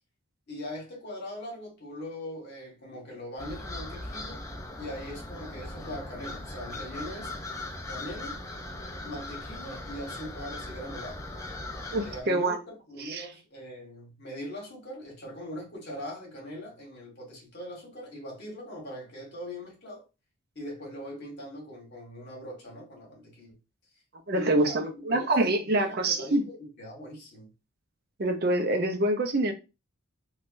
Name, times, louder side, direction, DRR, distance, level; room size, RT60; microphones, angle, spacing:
voice 1, 0.5-4.4 4.8-7.3 7.9-8.4 9.0-11.2 12.0-20.0 20.5-23.6 24.3-27.5, left 1 dB, 50° left, 1.3 m, -41 dB
sound 1, 3.4-12.2, left 2 dB, 15° left, 0.4 m, -39 dB
voice 2, 11.9-12.6 13.0-13.2 24.3-26.4 28.2-29.5, right 1 dB, 45° right, 0.5 m, -26 dB
3.6 x 2.3 x 2.5 m
head